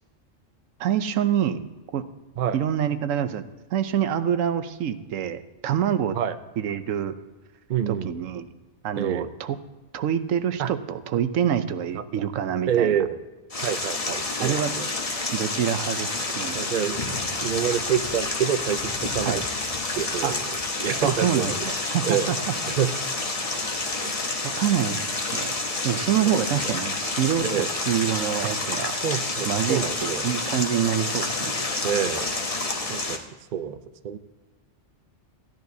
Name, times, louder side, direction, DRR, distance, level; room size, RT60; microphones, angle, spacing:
voice 1, 0.8-1.6 1.9-2.1 2.5-6.2 6.6-7.1 7.9-8.5 8.8-9.6 9.9-13.0 14.4-14.7 15.3-16.6 19.2-19.4 20.2-20.3 21.0-22.4 24.6-25.5 25.8-28.9 29.4-31.5, right 9 dB, 90° right, 11 dB, 1.1 m, -26 dB
voice 2, 7.7-8.1 9.0-9.3 10.6-10.7 11.9-12.2 12.7-13.2 13.6-14.9 16.5-19.4 19.9-20.5 20.8-21.6 22.0-22.3 22.8-22.9 24.0-24.1 26.3-26.4 27.4-27.7 28.9-30.2 31.8-32.3 32.9-33.2 33.5-34.2, right 9 dB, 55° right, 10 dB, 0.6 m, -27 dB
sound 1, 13.5-33.2, left 3 dB, 30° left, 0.9 m, -29 dB
15.0 x 10.5 x 2.7 m, 1.2 s
omnidirectional pair, 1.3 m